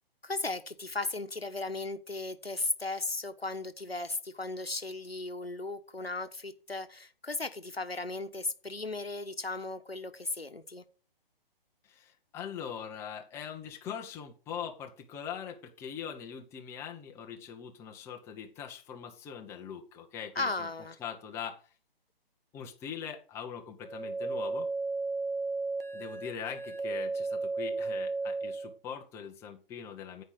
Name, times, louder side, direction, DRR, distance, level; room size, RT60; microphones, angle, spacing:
voice 1, 0.2-10.8 20.3-21.0, left 2 dB, 85° left, 1.4 m, -36 dB
voice 2, 11.8-20.7 21.0-21.7 22.5-24.7 25.9-30.2, left 8 dB, 10° left, 0.8 m, -42 dB
sound 1, 23.8-28.8, right 3 dB, 70° right, 1.3 m, -34 dB
9.6 x 5.1 x 7.7 m
figure-of-eight pair, 130°, 30 cm